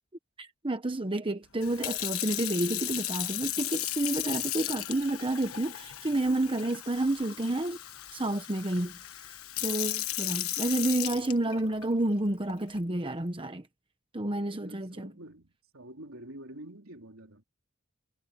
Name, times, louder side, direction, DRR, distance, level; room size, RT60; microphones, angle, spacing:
voice 1, 0.4-7.8 8.1-8.9 9.6-13.6 14.1-15.1, right 2 dB, 25° right, 1.0 m, -30 dB
Sink (filling or washing) / Fill (with liquid), 1.6-11.8 12.5-12.8, left 14 dB, 80° left, 1.2 m, -35 dB
voice 2, 14.6-17.4, right 1 dB, 70° right, 3.9 m, -47 dB
head